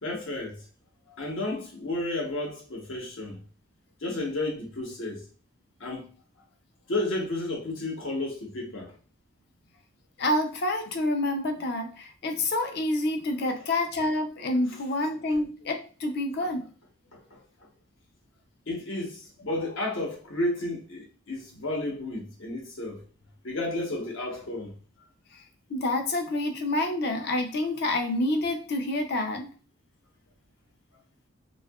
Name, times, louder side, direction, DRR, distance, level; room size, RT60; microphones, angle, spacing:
voice 1, 0.0-0.6 1.2-3.4 4.0-5.2 5.8-6.0 6.9-8.9 17.3-17.4 18.7-23.0 23.4-24.7, left 2 dB, 70° left, 0.9 m, -32 dB
voice 2, 10.2-16.7 19.5-19.6 25.7-29.5, left 1 dB, 50° left, 0.4 m, -28 dB
2.7 x 2.3 x 2.3 m
head